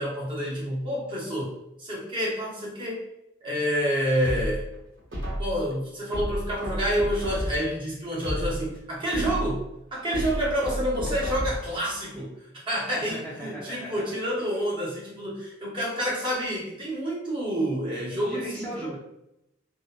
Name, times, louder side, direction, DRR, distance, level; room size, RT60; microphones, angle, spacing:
voice 1, 0.0-3.0 3.4-4.6 5.4-9.6 9.9-12.3 12.7-18.9, equal, 25° right, -5 dB, 0.8 m, -28 dB
sound 1, 4.2-5.6 6.1-7.7 8.1-9.6 10.1-11.7 12.1-12.2, equal, 75° right, 1.5 m, -31 dB
voice 2, 13.0-14.3 18.3-19.0, equal, 5° left, -8 dB, 0.5 m, -38 dB
2.7 x 2.1 x 2.4 m, 0.83 s
head